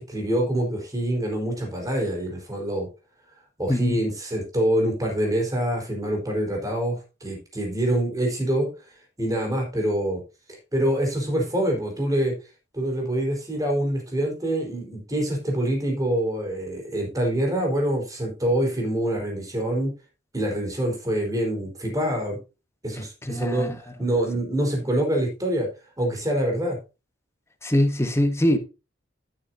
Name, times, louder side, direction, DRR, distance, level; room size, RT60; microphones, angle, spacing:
voice 1, 0.0-2.9 3.6-8.7 9.2-10.2 10.7-12.3 12.7-19.9 20.3-22.4 22.8-23.7 24.0-25.7 26.0-26.8, right 1 dB, 20° right, 4.3 m, -25 dB
voice 2, 23.3-23.8 27.6-28.6, left 1 dB, 15° left, 1.4 m, -22 dB
12.5 x 8.8 x 2.7 m
head